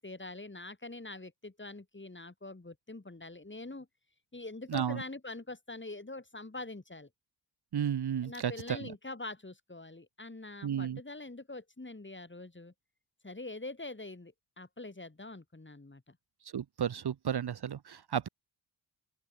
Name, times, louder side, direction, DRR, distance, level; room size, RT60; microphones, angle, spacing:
voice 1, 0.0-3.9 4.3-7.1 8.2-12.7 13.2-16.2, left 2 dB, 25° left, 7.9 m, -44 dB
voice 2, 4.7-5.0 7.7-8.9 10.6-11.0 16.5-18.3, right 8 dB, 55° right, 1.1 m, -33 dB
open air
cardioid pair, 55°, 47 cm